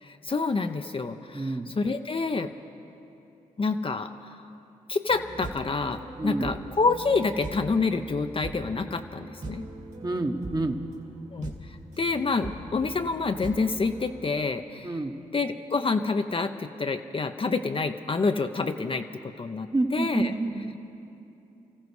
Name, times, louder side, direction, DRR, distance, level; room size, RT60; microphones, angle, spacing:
voice 1, 0.0-2.5 3.6-4.4 4.9-9.6 11.3-15.0 15.3-20.3, left 4 dB, 35° left, 7 dB, 0.7 m, -28 dB
voice 2, 1.3-1.7 6.2-6.5 10.0-10.8 14.8-15.2 19.7-20.7, right 2 dB, 25° right, 5 dB, 1.2 m, -28 dB
sound 1, 5.1-14.3, right 2 dB, 50° right, 2.1 m, -41 dB
28.5 x 14.5 x 3.2 m, 2.8 s
supercardioid pair, 45°, 15 cm